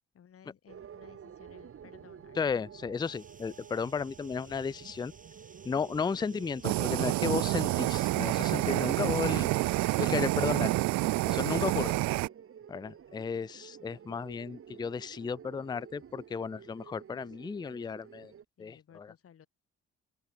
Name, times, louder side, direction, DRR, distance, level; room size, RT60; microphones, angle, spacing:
voice 1, 0.1-2.4 9.2-9.5 10.4-10.8 18.6-19.5, left 8 dB, 50° left, 2.5 m, -57 dB
sound 1, 0.7-18.4, right 8 dB, 45° right, 2.1 m, -51 dB
voice 2, 2.4-5.1 5.6-9.5 10.0-10.7 11.3-11.9 12.7-18.3 18.6-19.1, left 5 dB, 15° left, 0.4 m, -34 dB
sound 2, 3.0-10.6, right 4 dB, 25° right, 6.5 m, -58 dB
Fire, 6.6-12.3, right 19 dB, 70° right, 0.6 m, -28 dB
open air
hypercardioid pair, 55°, 30 cm